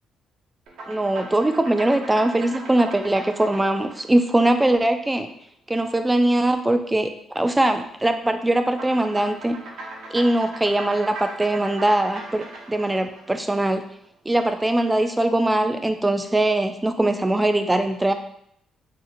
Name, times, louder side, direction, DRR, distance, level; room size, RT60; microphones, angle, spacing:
sound 1, 0.7-5.3 8.7-14.1, right 2 dB, 80° right, 0.8 m, -39 dB
voice 1, 0.9-5.3 5.7-9.6 10.1-13.8 14.3-18.1, right 1 dB, 15° right, 8 dB, 0.3 m, -21 dB
3.6 x 2.7 x 2.5 m, 0.69 s
cardioid pair, 90°, 0 cm